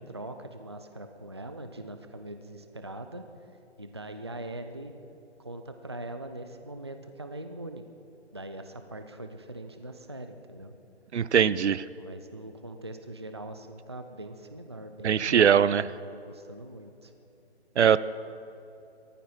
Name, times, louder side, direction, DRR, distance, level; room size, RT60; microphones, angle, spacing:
voice 1, 0.1-3.2 3.8-4.9 5.4-7.8 8.3-10.7 12.0-15.5 16.1-17.1, right 1 dB, 25° right, 7 dB, 0.4 m, -42 dB
voice 2, 11.1-11.8 15.0-15.8 17.8-18.0, right 8 dB, 80° right, 17 dB, 0.6 m, -21 dB
18.0 x 14.5 x 4.2 m, 2.8 s
hypercardioid pair, 165°, 34 cm